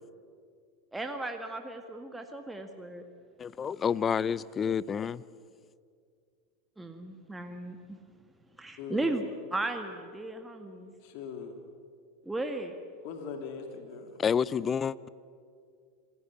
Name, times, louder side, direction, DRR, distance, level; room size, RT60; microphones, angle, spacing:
voice 1, 0.9-3.0 6.8-8.0 8.6-9.2 9.5-10.9 12.2-12.8, right 2 dB, 10° right, 1.9 m, -35 dB
voice 2, 3.4-5.2 14.2-15.1, left 7 dB, 30° left, 0.6 m, -29 dB
voice 3, 8.8-9.1 11.0-11.5 13.0-14.2, left 6 dB, 60° left, 2.8 m, -40 dB
27.0 x 17.0 x 9.9 m
hypercardioid pair, 90°, 0 cm